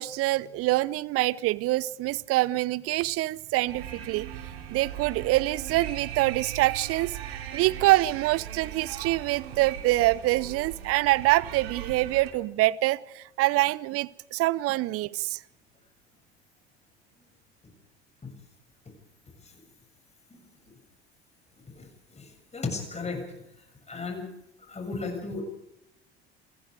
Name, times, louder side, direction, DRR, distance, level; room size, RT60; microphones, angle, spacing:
voice 1, 0.0-4.3 4.7-7.2 7.5-15.4, right 18 dB, 45° right, 0.7 m, -25 dB
sound 1, 3.7-12.3, right 10 dB, 70° right, 3.0 m, -39 dB
voice 2, 22.2-23.2 23.9-24.3 24.7-25.4, left 4 dB, 20° left, 7.4 m, -34 dB
28.0 x 20.5 x 5.0 m
figure-of-eight pair, 65°, 32 cm